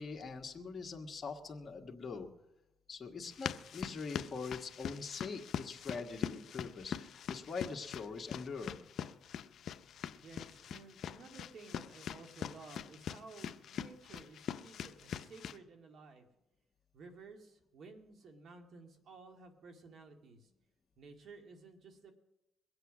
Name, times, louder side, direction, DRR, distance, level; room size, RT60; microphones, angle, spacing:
voice 1, 0.0-2.3 2.9-8.8, left 4 dB, 35° left, 1 dB, 1.6 m, -43 dB
sound 1, 3.3-15.6, left 8 dB, 65° left, 0.6 m, -43 dB
voice 2, 10.2-16.3 16.9-20.5 21.0-22.1, right 3 dB, 65° right, 5 dB, 2.1 m, -54 dB
21.5 x 8.1 x 6.1 m, 0.93 s
cardioid pair, 90°, 0 cm